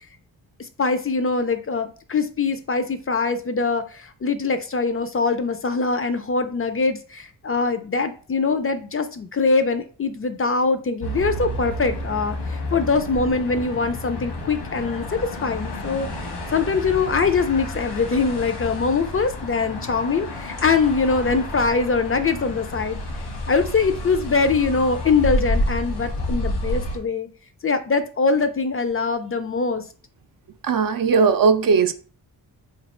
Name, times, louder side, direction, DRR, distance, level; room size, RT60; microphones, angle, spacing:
voice 1, 0.8-16.1 16.5-23.0 23.5-27.3 27.6-29.8, left 4 dB, 35° left, 0.4 m, -23 dB
sound 1, 11.0-27.0, left 1 dB, 90° left, 1.3 m, -30 dB
voice 2, 30.6-31.9, right 5 dB, 55° right, 0.5 m, -18 dB
3.2 x 2.4 x 4.2 m
cardioid pair, 75°, 41 cm